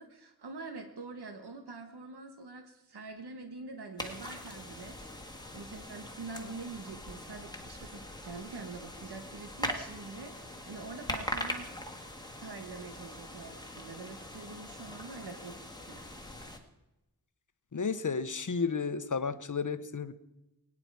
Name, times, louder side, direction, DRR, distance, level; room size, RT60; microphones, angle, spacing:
voice 1, 0.0-11.7 12.4-16.0, right 3 dB, 90° right, 6 dB, 1.3 m, -45 dB
sound 1, 4.0-16.6, left 1 dB, 10° left, 1.9 m, -42 dB
voice 2, 17.7-20.1, left 5 dB, 50° left, 13 dB, 0.9 m, -32 dB
22.0 x 9.8 x 4.7 m, 0.96 s
wide cardioid pair, 65°, 38 cm